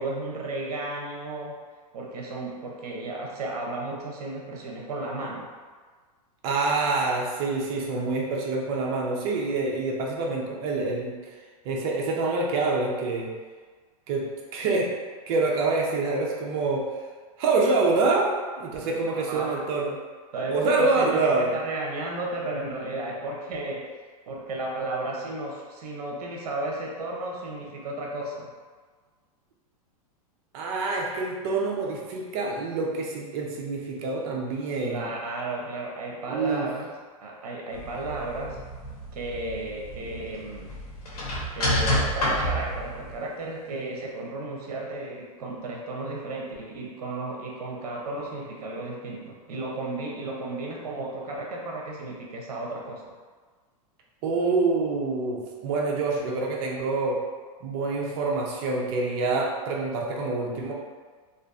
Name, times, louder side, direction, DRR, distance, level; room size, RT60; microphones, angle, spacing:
voice 1, 0.0-1.5 1.9-5.5 16.4-16.5 19.1-19.8 20.3-23.9 24.3-28.5 34.8-36.9 37.2-38.6 39.1-40.7 41.5-53.0, right 2 dB, 85° right, -2 dB, 0.6 m, -34 dB
voice 2, 6.4-11.1 11.6-13.3 14.1-14.2 14.5-14.9 15.3-16.8 17.4-19.9 20.5-21.5 30.5-35.1 36.3-36.7 54.2-57.2 57.6-60.7, right 3 dB, 40° right, -2 dB, 0.5 m, -26 dB
sound 1, 37.7-43.1, equal, 80° left, 0.9 m, -30 dB
2.5 x 2.4 x 2.3 m, 1.5 s
supercardioid pair, 145°, 19 cm